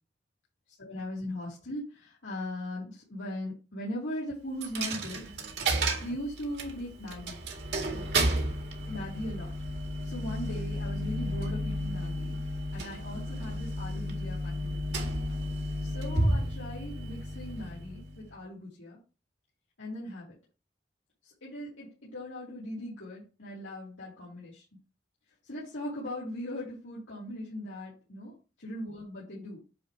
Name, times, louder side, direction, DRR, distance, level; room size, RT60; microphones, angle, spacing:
voice 1, 0.8-5.2 6.0-7.4 8.8-9.5 10.0-12.4 12.7-15.0 15.8-19.0 19.8-20.3 21.2-24.6 25.4-29.6, left 1 dB, 85° left, -7 dB, 2.9 m, -39 dB
Coin (dropping), 4.6-18.3, right 1 dB, 65° right, 2.0 m, -32 dB
9.2 x 3.4 x 4.8 m, 0.32 s
head